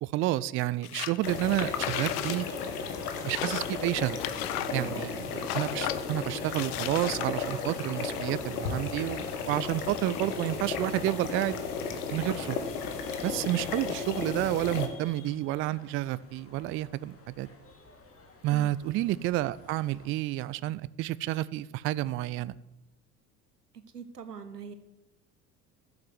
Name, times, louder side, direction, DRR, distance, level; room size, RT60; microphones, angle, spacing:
voice 1, 0.0-2.5 3.2-4.2 4.7-11.6 12.1-12.6 13.2-17.5 18.4-22.6, right 15 dB, 30° right, 18 dB, 0.4 m, -30 dB
sound 1, 0.8-1.2 1.5-2.4 2.7-2.8 3.2-5.1 5.4-6.0 6.5-7.5, left 14 dB, 50° left, 0.9 m, -35 dB
sound 2, 1.2-14.9, left 5 dB, 70° left, 1.6 m, -34 dB
sound 3, 1.8-20.1, left 3 dB, 30° left, 2.9 m, -55 dB
voice 2, 4.7-5.0 18.5-18.7 23.9-24.7, right 6 dB, 80° right, 9 dB, 1.3 m, -42 dB
12.0 x 7.3 x 9.8 m, 0.97 s
figure-of-eight pair, 60°, 46 cm